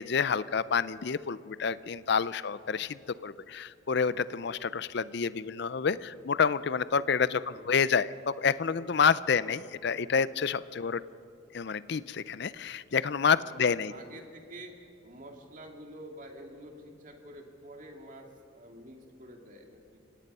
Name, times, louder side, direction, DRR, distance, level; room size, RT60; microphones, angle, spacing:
voice 1, 0.0-11.0 11.5-13.9, left 6 dB, 55° left, 17 dB, 0.5 m, -28 dB
voice 2, 13.4-14.7 15.0-20.0, right 1 dB, 40° right, 3 dB, 2.4 m, -48 dB
29.5 x 17.5 x 5.5 m, 2.7 s
head